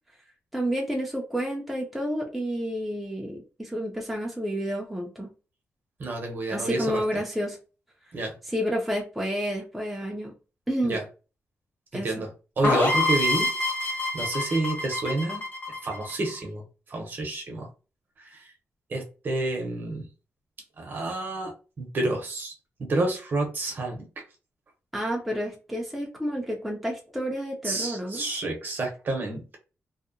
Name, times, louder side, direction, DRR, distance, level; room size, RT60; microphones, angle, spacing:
voice 1, 0.5-5.3 6.5-7.6 8.5-10.3 10.7-11.0 11.9-12.2 24.9-28.3, equal, ahead, 0.4 m, -30 dB
voice 2, 6.0-7.0 8.1-8.3 10.8-11.0 11.9-12.3 12.6-13.5 14.1-15.4 15.8-16.6 16.9-17.7 18.2-18.4 18.9-20.1 20.8-22.5 22.8-24.1 27.6-29.6, right 2 dB, 40° right, 0.7 m, -29 dB
sound 1, 12.6-16.4, left 2 dB, 40° left, 0.8 m, -26 dB
2.7 x 2.0 x 2.5 m
wide cardioid pair, 175°, 5 cm